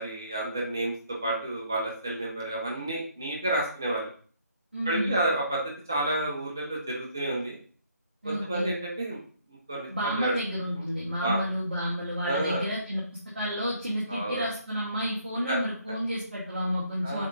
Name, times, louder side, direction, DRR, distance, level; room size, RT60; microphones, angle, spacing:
voice 1, 0.0-4.1 4.9-5.6 5.9-7.6 8.2-9.2 9.5-10.4 10.7-10.9 11.2-11.4 12.3-12.6 14.1-14.4 15.5-15.6 17.0-17.2, right 1 dB, 10° right, -3 dB, 0.7 m, -30 dB
voice 2, 4.7-5.2 8.2-8.7 9.9-13.0 13.3-17.3, equal, 35° right, -8 dB, 2.0 m, -30 dB
7.3 x 3.6 x 3.7 m, 0.43 s
figure-of-eight pair, 170°, 9 cm